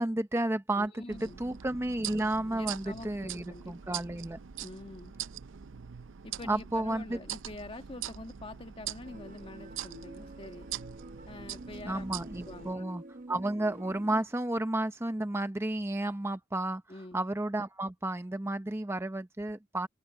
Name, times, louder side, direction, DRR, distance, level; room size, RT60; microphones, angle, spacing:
voice 1, 0.0-4.4 6.4-7.2 11.8-16.8 17.1-19.9, right 1 dB, 15° right, 0.7 m, -32 dB
voice 2, 0.8-1.4 2.5-4.0 4.6-5.1 6.2-10.7 11.3-12.0 12.5-12.9 16.9-17.2, left 2 dB, 30° left, 1.7 m, -46 dB
sound 1, 1.1-12.7, right 10 dB, 80° right, 0.6 m, -43 dB
sound 2, 9.0-14.2, right 1 dB, 45° right, 0.9 m, -48 dB
open air
head